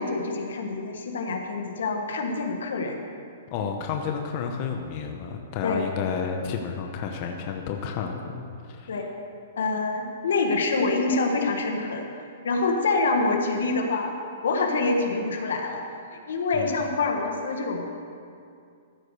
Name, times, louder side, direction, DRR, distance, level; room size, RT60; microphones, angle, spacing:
voice 1, 0.0-3.0 5.6-5.8 8.9-9.1 9.6-12.1 12.4-14.2 14.4-15.8 16.1-17.8, left 3 dB, 85° left, 2 dB, 1.4 m, -26 dB
voice 2, 3.5-8.9 16.5-16.7, left 6 dB, 35° left, 3 dB, 0.8 m, -31 dB
14.5 x 4.8 x 6.7 m, 2.4 s
hypercardioid pair, 160°, 0 cm